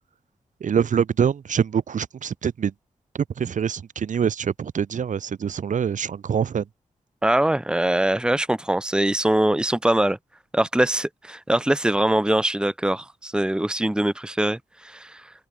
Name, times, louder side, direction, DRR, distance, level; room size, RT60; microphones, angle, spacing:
voice 1, 0.6-2.7 3.1-6.7, right 7 dB, 80° right, 5.1 m, -24 dB
voice 2, 7.2-10.2 10.5-15.3, right 1 dB, 5° right, 1.3 m, -22 dB
open air
wide cardioid pair, 105°, 13 cm